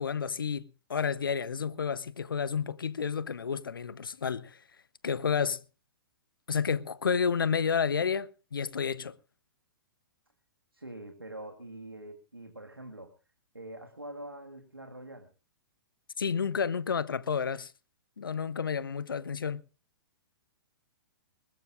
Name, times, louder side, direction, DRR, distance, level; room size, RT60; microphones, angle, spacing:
voice 1, 0.0-4.6 5.0-5.6 6.5-9.2 16.2-17.7 18.2-19.6, left 6 dB, 70° left, 0.8 m, -30 dB
voice 2, 10.7-13.1 13.5-15.3, right 1 dB, 90° right, 1.7 m, -44 dB
21.0 x 19.5 x 2.5 m
figure-of-eight pair, 115°, 12 cm